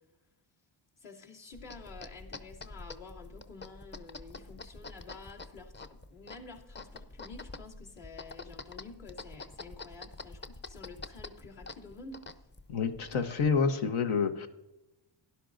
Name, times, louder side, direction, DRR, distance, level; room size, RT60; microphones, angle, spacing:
voice 1, 1.0-12.2, left 3 dB, 60° left, -2 dB, 2.6 m, -50 dB
sound 1, 1.5-13.7, left 3 dB, 25° left, 0.7 m, -47 dB
voice 2, 12.7-14.5, left 5 dB, 80° left, 8 dB, 1.0 m, -28 dB
12.5 x 10.5 x 2.6 m, 0.96 s
supercardioid pair, 60°, 48 cm